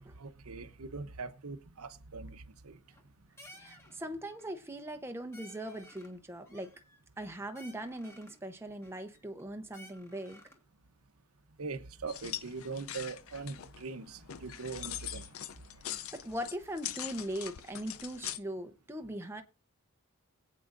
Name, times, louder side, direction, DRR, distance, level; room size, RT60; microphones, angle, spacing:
voice 1, 0.0-2.8 11.6-15.4 15.9-16.0, right 4 dB, 85° right, 0.9 m, -42 dB
sound 1, 2.7-3.1 3.4-4.0 4.2-4.6 4.9-5.0 5.3-6.2 6.5-7.2 7.6-8.4 8.8-9.4 9.7-10.6, left 1 dB, 10° left, 1.5 m, -56 dB
voice 2, 3.5-6.7 7.2-10.4 16.1-19.4, right 1 dB, 10° right, 0.8 m, -40 dB
sound 2, 12.1-18.4, left 11 dB, 70° left, 0.5 m, -43 dB
21.5 x 8.4 x 2.6 m
head